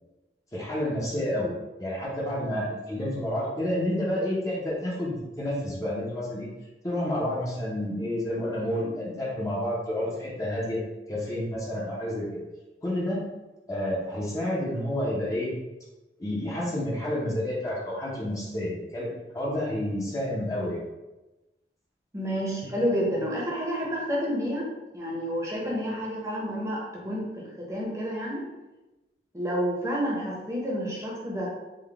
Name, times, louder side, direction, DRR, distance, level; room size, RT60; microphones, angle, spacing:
voice 1, 0.5-1.5 1.8-6.5 6.8-10.8 11.1-12.4 12.8-13.2 13.7-15.6 16.2-20.8, left 1 dB, 20° left, -5 dB, 0.6 m, -29 dB
voice 2, 22.1-24.7 24.9-28.4 29.3-31.5, equal, 15° right, -4 dB, 0.7 m, -29 dB
3.8 x 2.2 x 3.4 m, 1.1 s
head